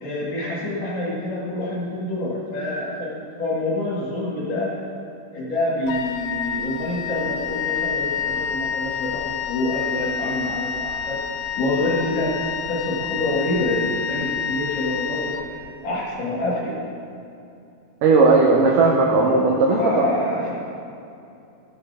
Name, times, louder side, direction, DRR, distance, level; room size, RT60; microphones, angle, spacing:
voice 1, 0.0-4.8 5.3-11.2 11.6-12.4 12.7-15.5 15.8-16.8 19.7-20.5, left 1 dB, 50° left, -7 dB, 2.8 m, -26 dB
Wind instrument woodwind instrument, 5.9-16.0, left 7 dB, 85° left, 2.5 m, -28 dB
voice 2, 18.0-20.1, right 3 dB, 80° right, 0 dB, 1.9 m, -16 dB
14.0 x 7.3 x 3.5 m, 2.6 s
omnidirectional pair, 4.6 m